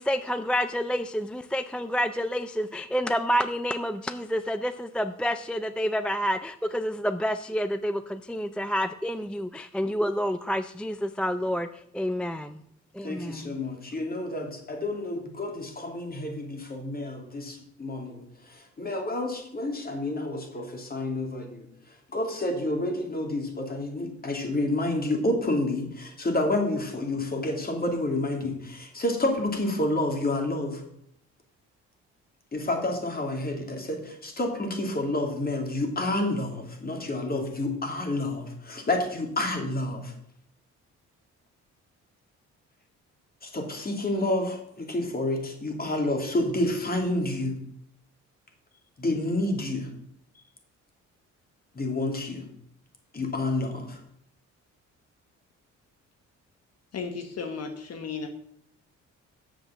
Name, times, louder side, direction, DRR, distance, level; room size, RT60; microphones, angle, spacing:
voice 1, 0.0-11.7 11.9-12.6 12.9-13.5, equal, 5° left, 11 dB, 0.4 m, -28 dB
voice 2, 13.0-30.8 32.5-40.1 43.4-47.6 49.0-49.9 51.7-52.5 53.1-54.0, left 1 dB, 30° left, 3 dB, 2.7 m, -29 dB
voice 3, 56.9-58.3, left 5 dB, 55° left, 6 dB, 1.2 m, -34 dB
7.6 x 6.9 x 7.1 m, 0.70 s
cardioid pair, 90°, 30 cm